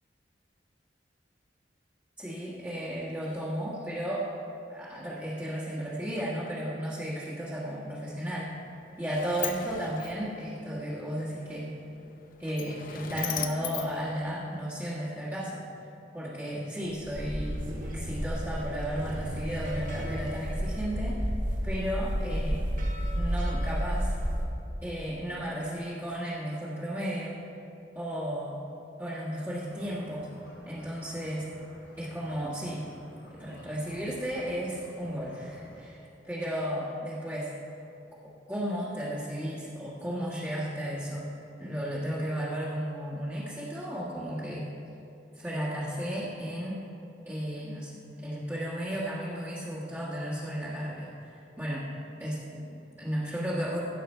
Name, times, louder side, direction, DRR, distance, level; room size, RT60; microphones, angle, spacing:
voice 1, 2.2-4.3 4.7-8.5 9.0-11.7 12.4-15.6 16.1-17.6 17.8-21.3 21.6-22.7 23.1-24.1 24.8-27.4 27.9-28.6 29.0-30.3 30.6-31.5 32.0-32.8 33.4-37.5 38.2-41.3 41.6-44.7 45.4-46.8 47.2-51.9 52.2-53.8, equal, 10° right, -9 dB, 1.6 m, -34 dB
Sliding door, 8.5-14.9, left 9 dB, 50° left, 0.6 m, -40 dB
sound 1, 16.9-24.4, equal, 50° right, 1.8 m, -31 dB
sound 2, 29.6-35.8, equal, 85° left, 1.5 m, -53 dB
15.5 x 6.9 x 4.5 m, 2.8 s
head